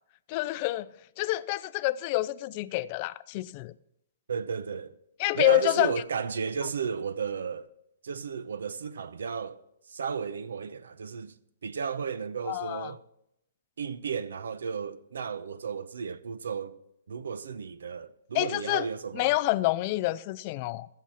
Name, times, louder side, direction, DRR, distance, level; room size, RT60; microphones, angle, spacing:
voice 1, 0.3-0.9 1.2-3.7 5.2-5.9 12.5-12.9 18.3-18.9 19.1-20.9, left 18 dB, 35° left, 0.4 m, -27 dB
voice 2, 4.3-4.9 5.3-7.7 8.0-9.6 9.9-11.4 11.6-13.0 13.8-16.8 17.1-19.4, right 6 dB, 90° right, 0.8 m, -34 dB
15.0 x 6.8 x 5.7 m
hypercardioid pair, 160°, 0 cm